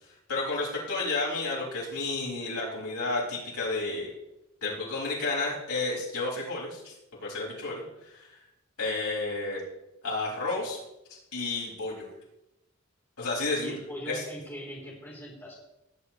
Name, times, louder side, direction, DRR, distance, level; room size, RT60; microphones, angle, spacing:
voice 1, 0.3-4.1 4.6-6.9 7.2-8.4 8.8-9.6 10.0-10.8 11.3-12.1 13.2-13.8 14.1-14.2, left 3 dB, 85° left, -5 dB, 5.4 m, -31 dB
voice 2, 13.6-15.5, equal, 10° left, -5 dB, 3.4 m, -40 dB
19.0 x 9.8 x 3.1 m, 0.91 s
head